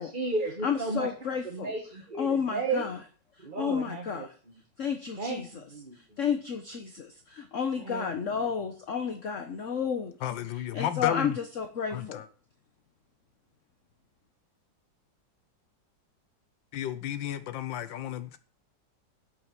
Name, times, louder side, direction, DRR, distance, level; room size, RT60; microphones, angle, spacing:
voice 1, 0.0-2.8 3.4-4.5 5.2-6.0 7.8-8.5, right 3 dB, 25° right, 1.6 m, -34 dB
voice 2, 0.6-1.7 2.2-3.0 3.6-4.3 4.8-5.5 6.2-7.0 7.5-10.1 10.7-12.2, left 7 dB, 45° left, 1.3 m, -31 dB
voice 3, 10.2-11.4 11.9-12.3 16.7-18.4, left 11 dB, 90° left, 1.5 m, -32 dB
9.6 x 8.4 x 7.4 m
omnidirectional pair, 2.0 m